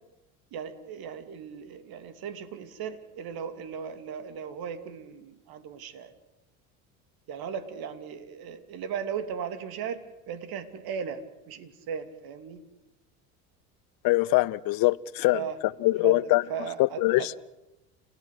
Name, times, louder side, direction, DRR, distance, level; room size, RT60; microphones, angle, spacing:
voice 1, 0.5-6.1 7.3-10.0 10.3-11.2 11.5-12.6 15.3-15.6 16.0-17.4, right 7 dB, 55° right, 11 dB, 2.9 m, -37 dB
voice 2, 14.0-15.4 15.8-16.4 16.8-17.4, left 20 dB, 50° left, 17 dB, 0.8 m, -23 dB
29.5 x 16.5 x 8.3 m, 0.97 s
hypercardioid pair, 75°, 44 cm